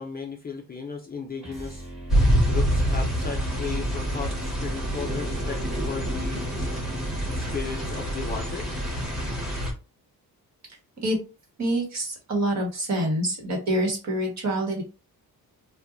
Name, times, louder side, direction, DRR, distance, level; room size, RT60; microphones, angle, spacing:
voice 1, 0.0-1.8 2.4-6.4 7.3-8.7, left 5 dB, 25° left, 1 dB, 0.5 m, -35 dB
sound 1, 1.4-7.6, right 1 dB, 15° right, 1.5 m, -40 dB
sound 2, 2.1-9.7, equal, ahead, 1.2 m, -26 dB
voice 2, 11.6-14.8, right 1 dB, 45° right, 1 dB, 1.4 m, -26 dB
4.4 x 2.3 x 2.5 m, 0.31 s
wide cardioid pair, 155°, 37 cm